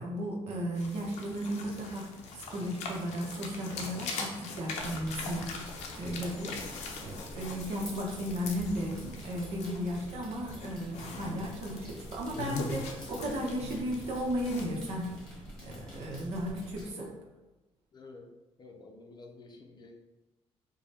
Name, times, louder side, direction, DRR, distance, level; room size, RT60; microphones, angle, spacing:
voice 1, 0.0-5.5 5.9-6.6 7.0-15.1 15.6-17.1, equal, 70° right, -1 dB, 0.9 m, -35 dB
sound 1, 0.7-15.3, left 4 dB, 85° left, 0.6 m, -42 dB
sound 2, 4.8-16.9, equal, 5° left, 1.2 m, -48 dB
voice 2, 7.3-7.6 15.7-16.0 17.9-18.3 18.6-19.9, left 3 dB, 40° left, 3 dB, 0.6 m, -51 dB
4.8 x 2.2 x 2.8 m, 1.0 s
cardioid pair, 105°, 11 cm